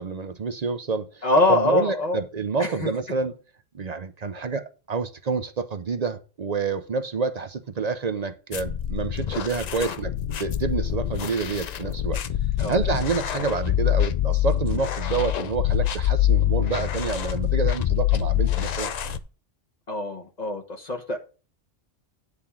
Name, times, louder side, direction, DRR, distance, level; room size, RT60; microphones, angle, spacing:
voice 1, 0.0-3.4 3.7-10.1 10.4-12.2 12.7-18.9, right 4 dB, 45° right, 0.6 m, -28 dB
voice 2, 1.2-2.2 2.6-2.9 12.6-12.8 19.9-21.2, left 2 dB, 35° left, 1.3 m, -23 dB
sound 1, 8.5-19.2, left 12 dB, 55° left, 0.4 m, -25 dB
9.8 x 3.5 x 7.0 m
omnidirectional pair, 1.2 m